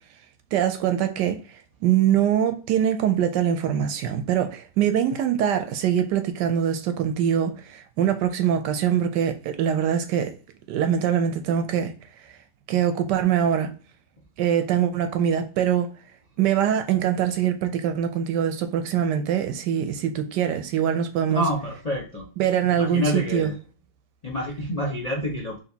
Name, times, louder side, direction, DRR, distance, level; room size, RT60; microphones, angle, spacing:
voice 1, 0.5-10.3 10.7-11.9 12.7-13.7 14.4-15.9 16.4-21.4 22.4-23.5, right 9 dB, 75° right, 1.1 m, -23 dB
voice 2, 21.3-22.3 22.7-23.6 24.2-25.6, equal, 75° left, 0.3 m, -28 dB
5.0 x 3.1 x 2.7 m
omnidirectional pair, 2.1 m